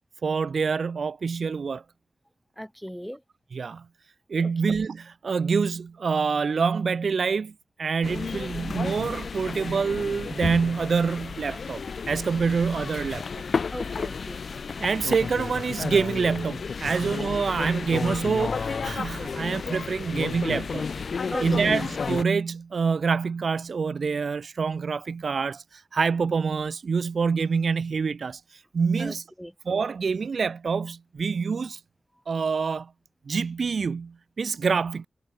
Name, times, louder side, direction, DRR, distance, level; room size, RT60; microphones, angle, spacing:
voice 1, 0.2-1.8 3.5-3.8 4.3-7.5 7.8-13.4 14.8-20.8 21.4-28.4 28.7-29.2 29.7-31.8 32.3-32.9 33.3-35.1, right 5 dB, 70° right, 0.6 m, -26 dB
voice 2, 2.6-3.2 4.4-4.5 13.7-14.4 16.9-17.0 21.3-21.8 29.0-29.5, equal, ahead, 5.7 m, -36 dB
sound 1, 8.0-22.2, left 5 dB, 70° left, 3.3 m, -32 dB
wide cardioid pair, 80°, 0 cm